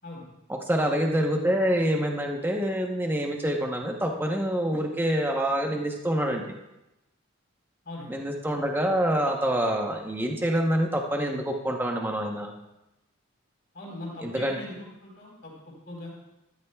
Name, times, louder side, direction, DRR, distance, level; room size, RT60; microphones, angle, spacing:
voice 1, 0.5-6.4 8.1-12.5 14.2-14.6, equal, 10° right, 2 dB, 0.9 m, -26 dB
voice 2, 7.8-8.2 13.7-16.1, left 1 dB, 45° left, -3 dB, 4.2 m, -40 dB
14.0 x 13.0 x 2.3 m, 0.94 s
head